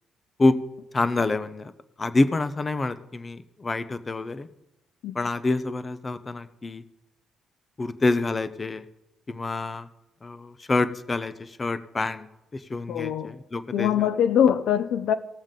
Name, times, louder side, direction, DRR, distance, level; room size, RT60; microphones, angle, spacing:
voice 1, 0.9-1.7 2.0-4.5 5.1-6.8 7.8-8.8 9.3-9.9 10.2-12.3 12.5-14.1, left 2 dB, 30° left, 0.7 m, -27 dB
voice 2, 12.9-13.4 13.7-15.2, left 9 dB, 75° left, 0.7 m, -23 dB
18.0 x 7.2 x 3.7 m
cardioid pair, 90°, 0 cm